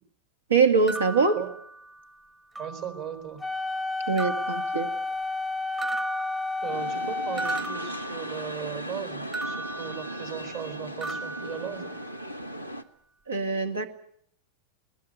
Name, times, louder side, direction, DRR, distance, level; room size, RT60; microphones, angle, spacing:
voice 1, 0.5-1.4 4.1-4.9 12.6-12.7 13.3-13.9, right 4 dB, 70° right, 8 dB, 2.0 m, -23 dB
sound 1, 0.9-2.2 2.6-3.3 4.2-5.4 5.8-8.7 9.3-10.7 11.0-12.3, right 2 dB, 15° right, 1.3 m, -37 dB
voice 2, 2.6-3.4 6.6-11.9, right 9 dB, 50° right, 8 dB, 4.2 m, -37 dB
Wind instrument woodwind instrument, 3.4-7.6, left 3 dB, 5° left, 0.9 m, -31 dB
sound 2, 6.7-12.8, equal, 90° right, 1.2 m, -37 dB
21.0 x 19.5 x 9.3 m, 0.69 s
figure-of-eight pair, 90°, 0 cm